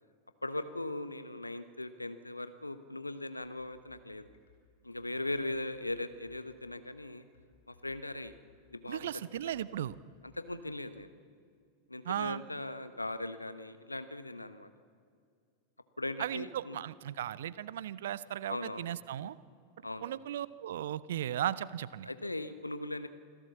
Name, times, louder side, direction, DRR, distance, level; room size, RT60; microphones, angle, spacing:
voice 1, 0.4-4.3 4.8-7.2 7.7-8.3 8.7-9.5 10.4-11.1 11.9-14.7 16.0-16.8 18.5-18.8 19.8-20.1 22.0-23.1, left 2 dB, 85° left, 12 dB, 1.1 m, -39 dB
sound 1, 3.4-10.6, left 4 dB, 65° left, 4.8 m, -64 dB
voice 2, 8.9-10.0 12.0-12.4 16.2-19.4 20.0-22.1, right 11 dB, 60° right, 19 dB, 0.6 m, -36 dB
26.5 x 16.5 x 7.2 m, 2.2 s
figure-of-eight pair, 90°, 0 cm